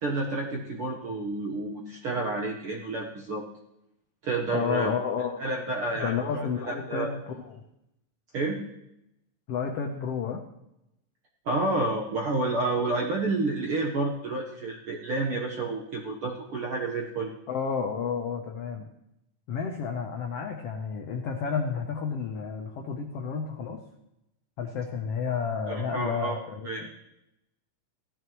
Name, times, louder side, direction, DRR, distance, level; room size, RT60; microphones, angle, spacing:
voice 1, 0.0-3.4 4.2-4.9 5.4-7.1 8.3-8.6 11.4-17.3 25.7-26.4 26.6-26.9, right 2 dB, 65° right, -1 dB, 1.4 m, -30 dB
voice 2, 4.5-5.4 6.0-7.6 9.5-10.4 17.5-18.9 19.5-23.8 24.6-26.9, left 6 dB, 85° left, 3 dB, 1.3 m, -31 dB
16.0 x 12.5 x 3.1 m, 0.85 s
omnidirectional pair, 4.0 m